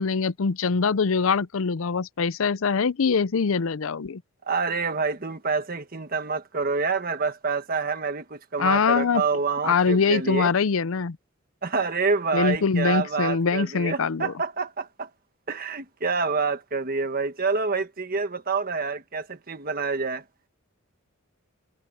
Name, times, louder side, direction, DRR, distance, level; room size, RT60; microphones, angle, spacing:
voice 1, 0.0-4.2 8.6-9.2 9.6-11.2 12.3-14.3, left 5 dB, 70° left, 0.5 m, -23 dB
voice 2, 4.5-10.5 11.6-15.1 15.5-20.2, right 4 dB, 45° right, 1.4 m, -27 dB
head